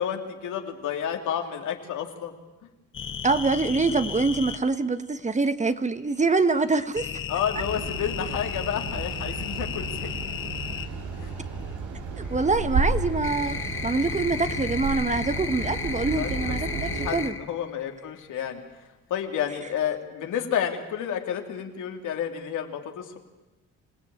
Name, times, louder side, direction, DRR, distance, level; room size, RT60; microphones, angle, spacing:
voice 1, 0.0-2.3 7.3-10.2 11.2-11.3 16.2-16.6 16.9-18.6 19.1-23.2, left 9 dB, 80° left, 4 dB, 2.8 m, -30 dB
sound 1, 2.9-4.6 7.0-10.9 12.3-17.5 17.8-18.4, left 6 dB, 40° left, 1.3 m, -34 dB
voice 2, 3.2-7.2 12.2-17.4, right 3 dB, 25° right, 11 dB, 1.2 m, -25 dB
sound 2, 7.5-17.1, right 4 dB, 85° right, 3.7 m, -32 dB
26.5 x 17.0 x 8.9 m, 1.1 s
cardioid pair, 90°, 30 cm